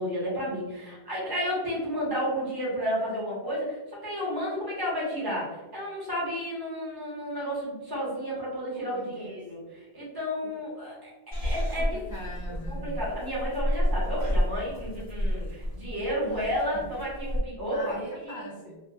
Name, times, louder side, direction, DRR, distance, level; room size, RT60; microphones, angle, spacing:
voice 1, 0.0-11.1 11.4-12.0 12.7-17.9 18.2-18.4, equal, 20° right, -6 dB, 1.0 m, -32 dB
voice 2, 8.7-9.4 10.4-10.5 11.8-12.9 16.2-17.0 17.7-18.8, equal, 25° left, -4 dB, 0.5 m, -42 dB
Purr / Meow, 11.3-17.4, equal, 60° right, 1.5 m, -30 dB
2.9 x 2.3 x 2.3 m, 1.1 s
omnidirectional pair, 1.1 m